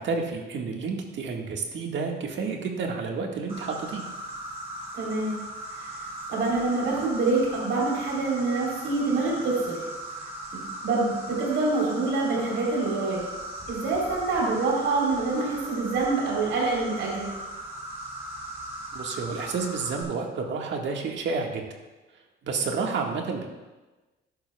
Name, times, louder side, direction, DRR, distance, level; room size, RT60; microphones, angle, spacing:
voice 1, 0.0-4.0 18.9-21.7 22.4-23.5, right 4 dB, 65° right, 1 dB, 1.6 m, -30 dB
Insect, 3.5-20.0, right 1 dB, 30° right, 3.6 m, -38 dB
voice 2, 4.9-5.4 6.3-9.8 10.5-13.2 13.7-17.3, right 3 dB, 85° right, -3 dB, 3.6 m, -26 dB
12.5 x 10.5 x 2.3 m, 1.2 s
cardioid pair, 90°, 20 cm